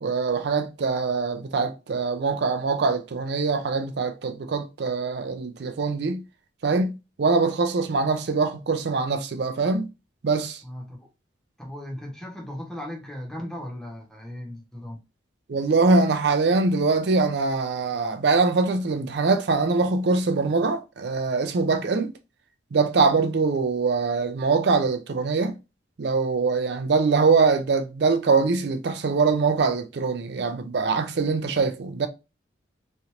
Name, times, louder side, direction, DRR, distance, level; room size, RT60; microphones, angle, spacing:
voice 1, 0.0-6.2 6.6-9.9 10.2-10.6 15.5-22.1 22.7-25.6 26.0-32.1, right 4 dB, 60° right, 0.4 m, -23 dB
voice 2, 10.6-11.1 11.6-15.0, left 1 dB, 5° left, 0.8 m, -37 dB
3.1 x 2.5 x 2.8 m
head